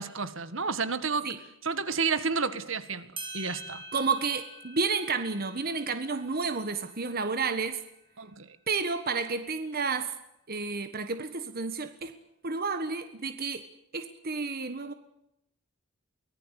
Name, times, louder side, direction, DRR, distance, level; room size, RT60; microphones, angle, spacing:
voice 1, 0.0-1.3 1.6-3.1 3.3-3.8 8.2-8.5, right 5 dB, 70° right, 12 dB, 1.9 m, -30 dB
sound 1, 2.8-2.9 3.2-8.2, right 2 dB, 25° right, 5.5 m, -46 dB
voice 2, 3.9-7.8 8.7-10.1 10.5-12.1 12.4-13.6 13.9-14.9, right 4 dB, 50° right, 9 dB, 1.5 m, -31 dB
24.0 x 19.5 x 8.3 m, 0.83 s
head